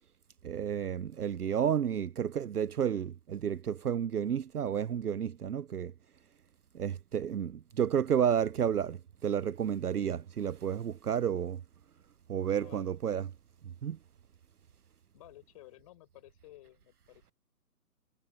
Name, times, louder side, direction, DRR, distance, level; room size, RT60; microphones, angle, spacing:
voice 1, 0.4-5.9 6.7-11.6 12.3-13.3 13.8-14.0, right 8 dB, 65° right, 0.7 m, -31 dB
voice 2, 12.5-13.0 15.1-17.3, left 17 dB, 20° left, 5.9 m, -55 dB
hypercardioid pair, 165°, 49 cm